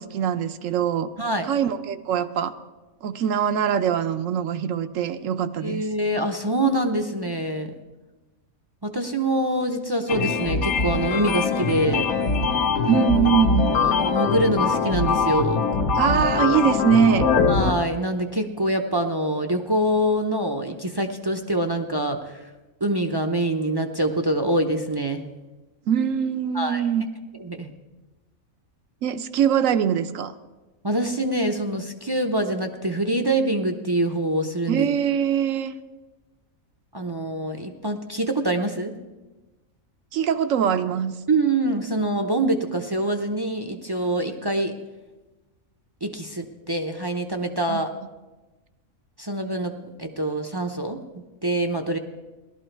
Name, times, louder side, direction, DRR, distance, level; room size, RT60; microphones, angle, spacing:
voice 1, 0.0-1.1 1.4-2.5 3.0-5.8 12.9-13.8 15.9-17.3 25.9-27.1 29.0-30.3 34.7-35.7 40.1-41.1 47.7-47.8, right 8 dB, 70° right, 11 dB, 1.0 m, -22 dB
voice 2, 1.2-1.5 5.6-7.7 8.8-12.1 13.8-15.6 17.5-22.4 22.8-25.2 26.5-26.8 27.4-27.7 30.8-34.9 36.9-39.0 41.3-44.8 46.0-47.9 49.2-52.0, right 1 dB, 30° right, 5 dB, 0.5 m, -25 dB
sound 1, 10.1-17.7, left 4 dB, 80° left, 1.4 m, -22 dB
17.0 x 12.0 x 4.5 m, 1.1 s
omnidirectional pair, 1.5 m